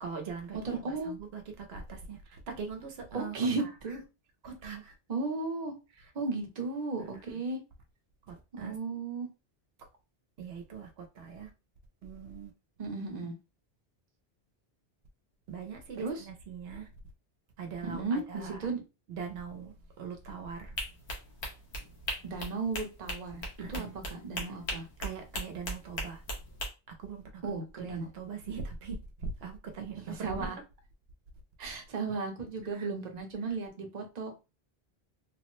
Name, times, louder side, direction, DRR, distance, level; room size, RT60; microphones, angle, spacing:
voice 1, 0.0-3.7 4.4-4.9 6.0-6.1 7.0-7.2 8.3-8.8 10.4-11.5 12.0-12.5 15.5-16.9 17.6-18.7 19.1-20.7 23.6-23.9 25.0-26.2 26.9-27.4 27.8-30.5 32.7-32.9, right 5 dB, 80° right, 0.9 m, -41 dB
voice 2, 0.6-1.1 3.1-4.0 5.1-5.7 6.1-7.6 8.5-9.3 12.8-13.3 16.0-16.2 17.8-18.8 22.2-23.4 23.7-24.9 27.4-28.1 30.0-30.6 31.6-34.3, right 3 dB, 45° right, 0.8 m, -35 dB
sound 1, 20.8-26.7, equal, 90° left, 1.1 m, -38 dB
3.1 x 2.1 x 3.0 m
omnidirectional pair, 1.1 m